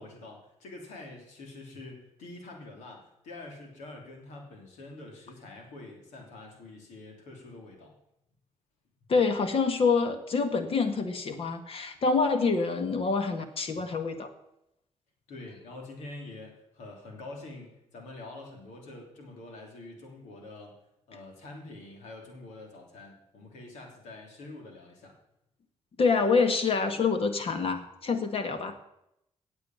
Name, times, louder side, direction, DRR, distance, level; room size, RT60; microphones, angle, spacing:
voice 1, 0.0-7.9 15.3-20.8 21.1-25.2, left 2 dB, 90° left, 1 dB, 3.2 m, -46 dB
voice 2, 9.1-14.3 26.0-28.8, left 4 dB, 55° left, 8 dB, 1.7 m, -26 dB
8.8 x 7.9 x 9.0 m, 0.82 s
cardioid pair, 80°, 12 cm